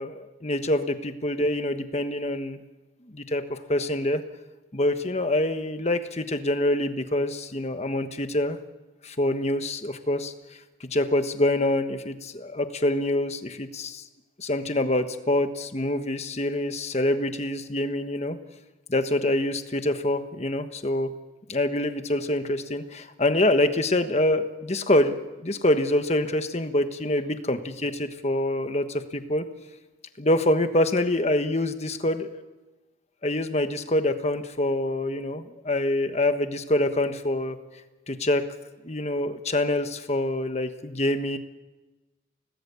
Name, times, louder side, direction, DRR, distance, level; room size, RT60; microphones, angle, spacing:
voice 1, 0.0-2.6 3.1-4.2 4.7-8.6 9.0-10.3 10.8-14.0 14.4-18.4 18.9-21.1 21.5-29.4 30.2-32.4 33.2-37.6 38.1-38.4 38.8-41.4, left 1 dB, 35° left, 8 dB, 1.3 m, -25 dB
26.0 x 18.5 x 6.9 m, 1.1 s
head